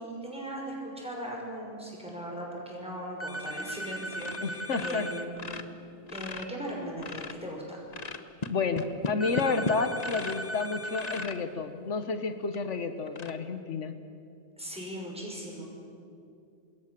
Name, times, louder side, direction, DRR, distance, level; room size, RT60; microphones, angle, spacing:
voice 1, 0.0-5.6 6.1-7.8 14.6-15.6, right 1 dB, 5° right, -2 dB, 6.1 m, -38 dB
sound 1, 3.2-5.3 9.2-11.3, right 1 dB, 10° left, 1.2 m, -38 dB
sound 2, 3.5-3.9 4.1-4.4 4.7-7.5 7.9-10.5 10.9-11.4 12.0-12.1 12.5-12.6 13.1-13.3, left 3 dB, 35° left, 1.1 m, -37 dB
voice 2, 4.4-5.1 8.5-13.9, left 4 dB, 85° left, 8 dB, 1.5 m, -30 dB
27.0 x 21.0 x 7.5 m, 2.5 s
omnidirectional pair, 1.2 m